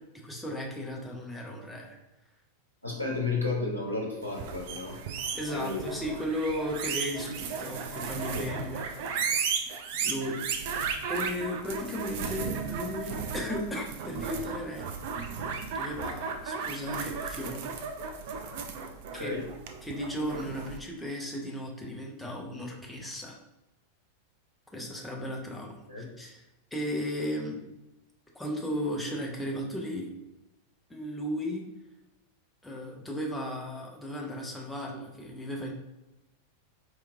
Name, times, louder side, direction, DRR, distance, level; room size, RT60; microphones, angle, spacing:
voice 1, 0.2-2.0 3.1-3.2 5.3-9.4 10.0-10.4 11.1-14.9 15.7-17.7 19.1-19.4 19.8-23.4 24.7-26.4 26.7-27.6 28.3-30.1 30.9-31.7 32.6-35.7, equal, 5° left, -1 dB, 0.7 m, -35 dB
voice 2, 2.8-5.0 5.5-5.8 8.3-8.5 19.1-19.4 25.9-26.1, left 3 dB, 90° left, -2 dB, 0.7 m, -32 dB
sound 1, 4.3-20.8, right 6 dB, 50° right, 0.4 m, -35 dB
4.5 x 2.8 x 2.4 m, 0.98 s
figure-of-eight pair, 90°, 0 cm